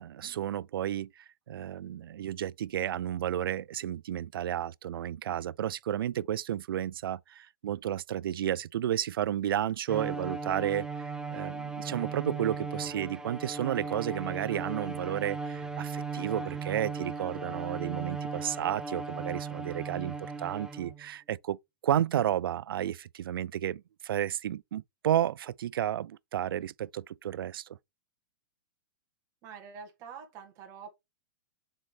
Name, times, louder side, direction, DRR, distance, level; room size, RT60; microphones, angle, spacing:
voice 1, 0.0-21.6 21.8-27.7, right 11 dB, 90° right, 0.4 m, -32 dB
Bowed string instrument, 9.9-21.1, right 4 dB, 5° right, 0.3 m, -37 dB
voice 2, 29.4-30.9, right 6 dB, 30° right, 1.8 m, -46 dB
7.4 x 4.0 x 3.3 m
hypercardioid pair, 165°, 12 cm